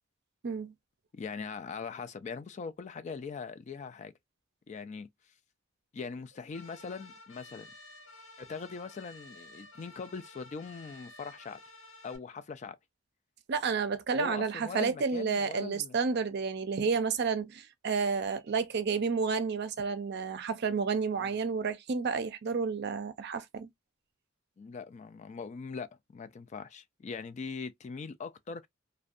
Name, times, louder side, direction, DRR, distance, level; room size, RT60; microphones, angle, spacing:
voice 1, 1.1-4.1 4.7-5.1 5.9-7.7 8.4-11.6 12.0-12.8 14.1-15.9 21.2-21.3 24.6-28.7, left 5 dB, 35° left, 0.3 m, -41 dB
sound 1, 6.5-12.2, left 2 dB, 75° left, 0.8 m, -52 dB
voice 2, 13.5-23.7, right 5 dB, 55° right, 0.5 m, -31 dB
2.5 x 2.1 x 2.3 m
head